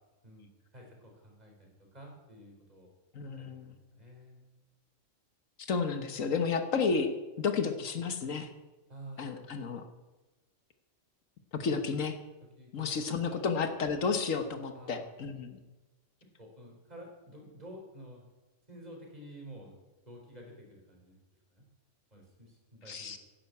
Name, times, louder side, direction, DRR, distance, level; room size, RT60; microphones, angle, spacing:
voice 1, 0.2-2.9 3.4-4.5 8.9-9.5 12.6-13.4 14.7-15.1 16.4-18.2 18.7-21.2 21.5-21.6 22.1-23.2, right 1 dB, 30° right, 0 dB, 4.2 m, -51 dB
voice 2, 3.1-3.7 5.7-8.5 9.2-9.8 11.5-12.2 12.7-15.6 22.9-23.2, left 5 dB, 75° left, 8 dB, 1.6 m, -32 dB
11.5 x 10.0 x 8.4 m, 1.1 s
omnidirectional pair, 1.4 m